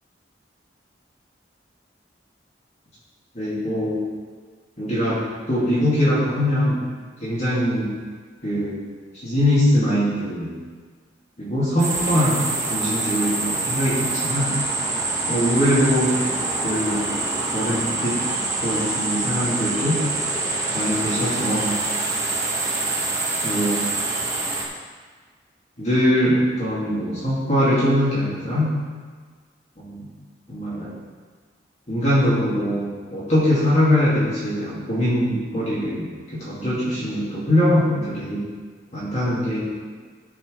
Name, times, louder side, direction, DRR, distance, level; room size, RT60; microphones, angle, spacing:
voice 1, 3.3-4.1 4.8-5.2 5.5-6.8 7.2-7.9 8.4-8.8 9.1-10.5 11.4-14.5 15.3-16.1 16.6-17.0 17.5-18.2 18.6-20.0 20.7-21.8 23.4-23.8 25.8-28.7 29.8-30.1 30.5-30.9 31.9-38.5 38.9-39.6, equal, 40° left, -9 dB, 2.7 m, -22 dB
sound 1, 11.8-24.7, right 2 dB, 15° right, 1.4 m, -25 dB
13.5 x 6.8 x 3.5 m, 1.5 s
head